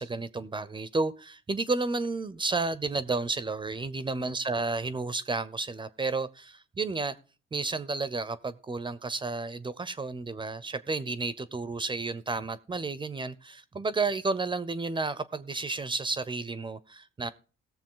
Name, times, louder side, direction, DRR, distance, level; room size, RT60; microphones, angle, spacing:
voice 1, 0.0-7.1 7.5-17.3, right 3 dB, 25° right, 0.6 m, -32 dB
17.5 x 6.9 x 3.8 m
cardioid pair, 90°, 20 cm